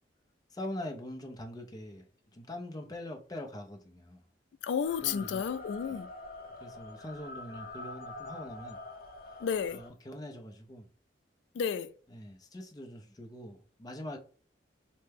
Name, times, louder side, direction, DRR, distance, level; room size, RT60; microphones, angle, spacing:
voice 1, 0.5-2.0 2.3-4.2 5.0-5.4 5.8-6.1 6.6-8.8 9.7-10.8 12.1-14.2, left 1 dB, 20° left, 0.5 m, -43 dB
voice 2, 4.6-6.1 9.4-9.8 11.5-11.9, left 7 dB, 85° left, 0.3 m, -32 dB
sound 1, 4.8-9.9, left 2 dB, 55° left, 0.7 m, -46 dB
3.2 x 2.1 x 3.3 m
head